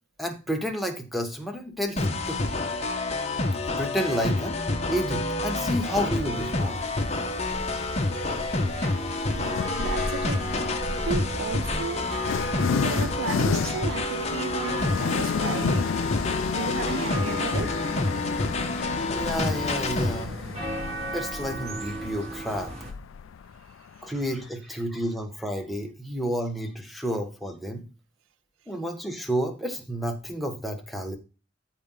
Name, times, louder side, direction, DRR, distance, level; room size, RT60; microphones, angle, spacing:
voice 1, 0.2-2.4 3.8-4.6 4.9-6.8 19.1-20.4 21.1-22.7 24.0-27.9 28.7-31.2, equal, ahead, 1.3 m, -30 dB
sound 1, 2.0-20.2, left 2 dB, 35° left, 1.2 m, -28 dB
sound 2, 6.3-22.9, equal, 35° right, 2.7 m, -36 dB
voice 2, 9.3-10.5 11.1-12.1 12.7-16.0 16.5-17.8, right 6 dB, 80° right, 0.4 m, -34 dB
sound 3, 9.5-10.0 11.0-24.5, left 7 dB, 85° left, 0.4 m, -32 dB
13.0 x 4.4 x 3.9 m
head